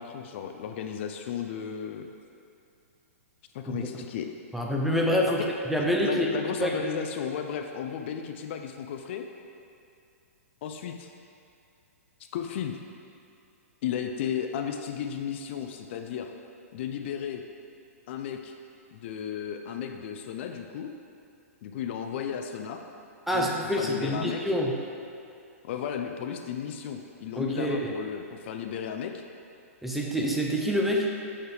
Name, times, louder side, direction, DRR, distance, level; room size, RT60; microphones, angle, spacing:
voice 1, 0.0-2.1 3.5-4.3 5.3-5.5 6.0-9.3 10.6-11.1 12.3-12.8 13.8-16.3 16.7-17.4 18.1-18.5 18.9-20.9 21.6-22.8 23.3-24.4 25.6-29.2, left 8 dB, 50° left, 5 dB, 0.4 m, -34 dB
voice 2, 4.5-5.4 5.7-6.3 6.6-6.8 23.3-24.7 27.4-27.9 29.8-31.1, equal, ahead, -2 dB, 0.5 m, -26 dB
6.7 x 4.2 x 3.3 m, 2.6 s
hypercardioid pair, 130°, 8 cm